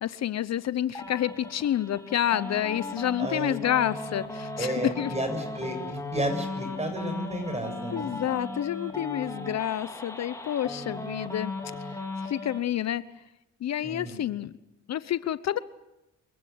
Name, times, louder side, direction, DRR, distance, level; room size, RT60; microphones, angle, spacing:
voice 1, 0.0-5.1 7.9-11.5 11.8-13.0 13.6-14.5 14.9-15.6, left 11 dB, 60° left, 15 dB, 0.9 m, -29 dB
sound 1, 0.9-12.6, left 2 dB, 10° left, 4.2 m, -37 dB
voice 2, 3.2-3.6 4.6-8.2 13.8-14.2, right 1 dB, 20° right, 5 dB, 7.2 m, -32 dB
28.0 x 16.0 x 9.5 m, 0.98 s
cardioid pair, 90°, 30 cm